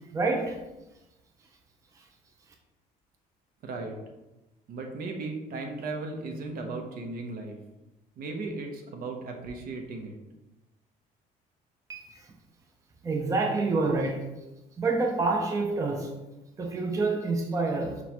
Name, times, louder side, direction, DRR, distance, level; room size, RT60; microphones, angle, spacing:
voice 1, 0.1-0.6 11.9-12.0 13.0-14.3 14.8-16.1 16.6-18.0, right 3 dB, 20° right, 2 dB, 0.4 m, -27 dB
voice 2, 3.6-4.0 4.7-7.6 8.2-10.2, right 3 dB, 60° right, 3 dB, 0.7 m, -36 dB
6.0 x 2.2 x 2.9 m, 1.0 s
cardioid pair, 110°, 17 cm